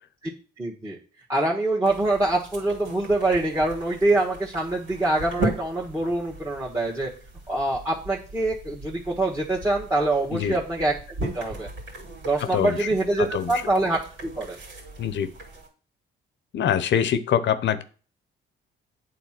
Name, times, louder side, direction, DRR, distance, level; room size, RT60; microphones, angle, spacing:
voice 1, 0.6-1.0 1.3-7.1 7.5-11.7 12.2-14.6, right 2 dB, 10° right, -2 dB, 1.6 m, -25 dB
sound 1, 1.8-15.7, right 2 dB, 75° right, 2.9 m, -37 dB
voice 2, 12.5-12.9 13.2-13.5 15.0-15.3 16.5-17.8, left 9 dB, 65° left, 13 dB, 0.8 m, -24 dB
8.3 x 3.8 x 6.0 m, 0.38 s
cardioid pair, 90°, 20 cm